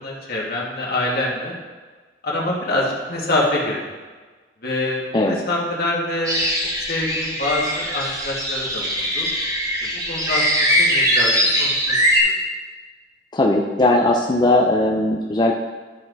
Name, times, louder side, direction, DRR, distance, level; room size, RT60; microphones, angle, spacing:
voice 1, 0.0-1.5 2.2-3.8 4.6-6.4 6.9-9.3 9.8-12.0 12.2-12.3, left 1 dB, 60° left, -3 dB, 1.8 m, -25 dB
sound 1, 6.3-12.2, equal, 20° right, 1.5 m, -21 dB
voice 2, 13.3-15.5, left 2 dB, 25° left, -1 dB, 0.5 m, -18 dB
12.5 x 4.3 x 4.0 m, 1.4 s
head